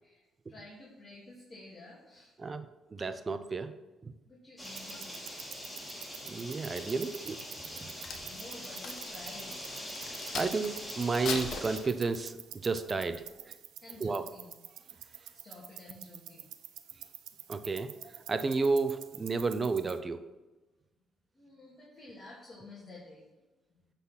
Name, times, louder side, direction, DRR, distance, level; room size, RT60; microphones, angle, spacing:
voice 1, 0.0-2.3 4.3-5.1 8.2-9.5 13.8-14.5 15.3-16.5 21.3-23.2, left 2 dB, 40° left, -5 dB, 2.4 m, -51 dB
voice 2, 2.4-3.7 4.0-4.1 6.2-7.4 7.8-7.9 10.3-13.5 14.0-14.2 17.5-20.2, right 4 dB, 30° right, 10 dB, 0.7 m, -32 dB
sound 1, 4.6-11.8, left 1 dB, 15° left, 2.7 m, -43 dB
sound 2, 4.6-20.0, right 12 dB, 85° right, 0.5 m, -49 dB
Crack, 7.7-10.7 11.1-12.4 12.9-13.1, left 4 dB, 70° left, 1.2 m, -40 dB
9.4 x 4.2 x 5.7 m, 1.1 s
cardioid pair, 90°, 0 cm